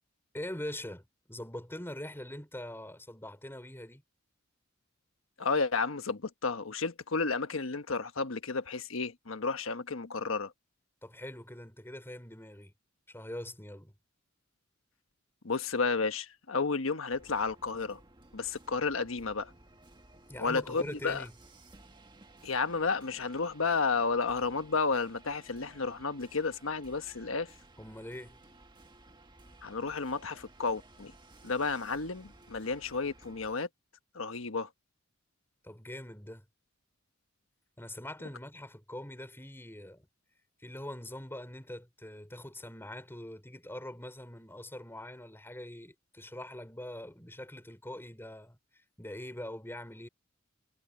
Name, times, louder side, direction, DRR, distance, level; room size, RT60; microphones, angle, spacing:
voice 1, 0.3-4.0 11.0-12.7 13.1-13.9 20.2-21.3 27.8-28.4 35.6-36.4 37.8-40.1 40.6-50.1, left 1 dB, 10° left, 4.5 m, -43 dB
voice 2, 5.4-10.5 15.4-18.0 18.3-19.5 20.4-21.2 22.4-27.5 29.6-31.1 31.4-33.7 34.1-34.7, left 4 dB, 85° left, 1.2 m, -32 dB
sound 1, 17.1-33.5, right 2 dB, 25° right, 1.7 m, -57 dB
head